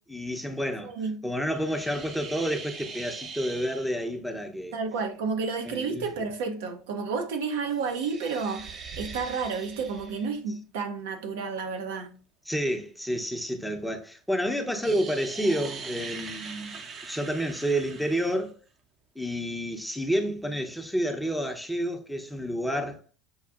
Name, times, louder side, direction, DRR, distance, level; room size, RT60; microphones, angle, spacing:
voice 1, 0.1-0.9 1.2-4.8 5.6-6.3 12.5-18.6 19.2-23.0, equal, 5° left, 0.7 m, -30 dB
voice 2, 0.8-1.2 4.7-12.1, right 5 dB, 75° right, 0.7 m, -31 dB
sound 1, 1.5-4.1 7.6-10.4 14.8-18.4, right 5 dB, 40° right, 0.7 m, -42 dB
6.9 x 2.4 x 2.4 m
hypercardioid pair, 85°, 0 cm